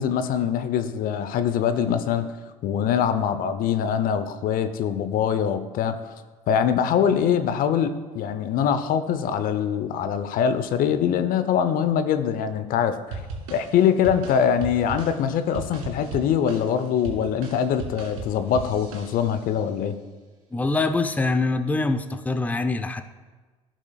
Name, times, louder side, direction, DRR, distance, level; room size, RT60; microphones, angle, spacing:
voice 1, 0.0-2.3 2.6-5.9 6.5-13.2 13.5-20.0, left 8 dB, 50° left, 10 dB, 0.7 m, -23 dB
sound 1, 13.1-19.5, right 3 dB, 75° right, 2.2 m, -37 dB
voice 2, 20.5-23.0, left 3 dB, 10° left, 8 dB, 0.6 m, -24 dB
15.5 x 6.0 x 2.3 m, 1.3 s
hypercardioid pair, 65°, 18 cm